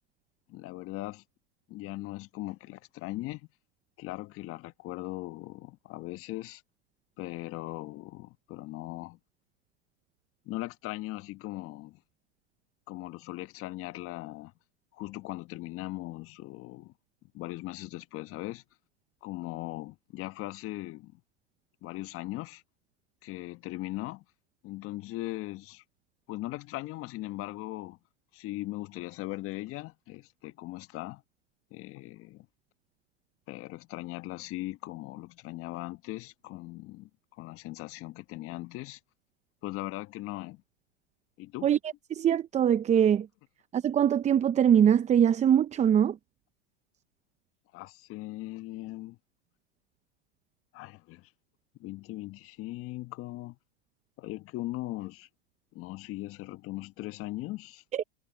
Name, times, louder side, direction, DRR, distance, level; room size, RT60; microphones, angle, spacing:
voice 1, 0.5-1.2 1.7-3.5 4.0-6.6 7.2-9.2 10.4-12.0 12.9-14.5 14.9-16.9 17.3-18.6 19.2-21.2 21.8-22.6 23.2-24.2 24.6-25.8 26.3-28.0 28.3-31.2 31.7-32.5 33.5-37.1 37.4-39.0 39.6-40.6 41.4-41.7 47.7-49.2 50.7-51.3 51.8-53.6 54.2-55.3 55.7-57.8, left 18 dB, 40° left, 1.4 m, -39 dB
voice 2, 42.1-43.3 43.7-46.2 57.9-58.0, right 9 dB, 20° right, 0.7 m, -22 dB
hypercardioid pair, 110°, 34 cm